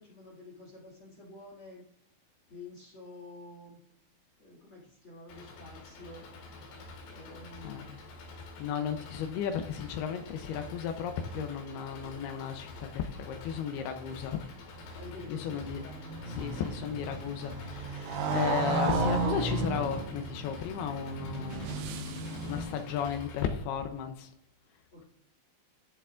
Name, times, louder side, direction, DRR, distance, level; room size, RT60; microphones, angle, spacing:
voice 1, 0.0-1.8 2.5-3.8 4.4-6.3 7.1-8.0 13.8-14.3 14.9-16.0 24.9-25.0, left 2 dB, 40° left, -3 dB, 2.1 m, -49 dB
Engine, 5.3-23.5, left 2 dB, 70° left, 3.9 m, -47 dB
voice 2, 7.6-8.0 8.6-14.4 15.3-15.8 16.4-24.3, left 8 dB, 85° left, 6 dB, 2.2 m, -35 dB
Motorcycle, 14.9-23.0, right 3 dB, 70° right, 2.9 m, -34 dB
sound 1, 19.9-22.9, right 8 dB, 85° right, 3.2 m, -49 dB
13.5 x 6.8 x 2.5 m, 0.76 s
omnidirectional pair, 5.5 m